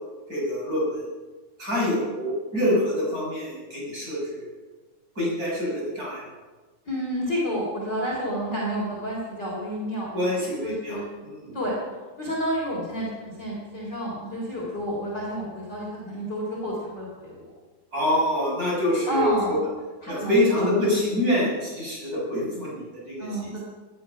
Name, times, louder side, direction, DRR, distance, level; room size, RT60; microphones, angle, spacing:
voice 1, 0.3-1.0 1.6-4.5 5.1-6.2 10.1-11.5 17.9-19.5 20.1-23.3, left 1 dB, 20° right, -6 dB, 6.9 m, -26 dB
voice 2, 6.8-10.3 10.6-11.1 11.5-11.7 12.2-17.5 19.1-19.6 20.0-21.0 23.2-23.5, equal, 25° left, -5 dB, 4.1 m, -30 dB
18.5 x 12.5 x 5.8 m, 1.3 s
omnidirectional pair, 4.5 m